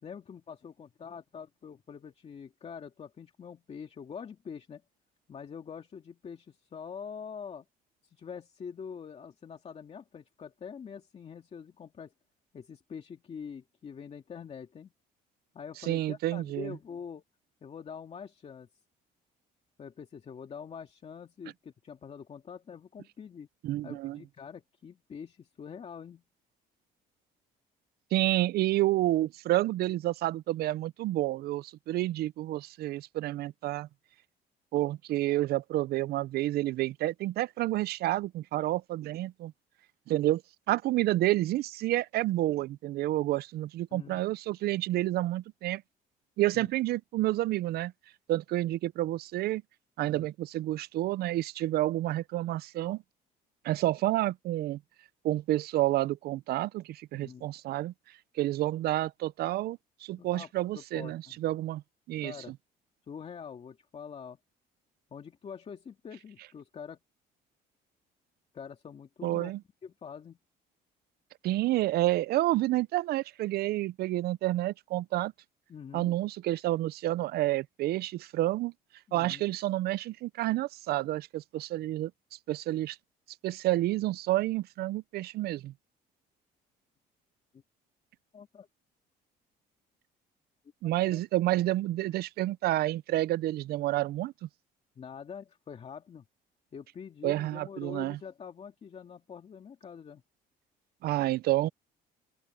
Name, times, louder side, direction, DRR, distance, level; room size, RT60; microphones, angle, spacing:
voice 1, 0.0-4.8 5.3-7.7 8.0-12.1 12.5-14.9 15.5-17.2 17.6-18.7 19.8-23.5 23.8-26.2 43.9-44.2 46.5-46.7 50.0-50.3 57.1-57.5 60.2-61.4 62.2-62.5 63.1-64.4 65.1-67.0 68.5-69.5 69.8-70.4 75.7-76.1 79.1-79.4 87.5-87.6 88.3-88.7 91.0-91.2 95.0-96.2 96.7-100.2, left 6 dB, 40° left, 2.2 m, -45 dB
voice 2, 15.8-16.8 23.6-24.2 28.1-33.9 34.7-39.5 40.1-40.4 40.7-45.8 46.4-47.9 48.3-49.6 50.0-53.0 53.6-54.8 55.2-57.9 58.4-61.8 62.1-62.3 69.2-69.6 71.4-75.3 75.9-78.7 79.1-82.1 82.5-83.0 83.4-85.7 90.8-94.5 97.2-98.2 101.0-101.7, right 16 dB, 70° right, 0.6 m, -29 dB
open air
cardioid pair, 110°, 17 cm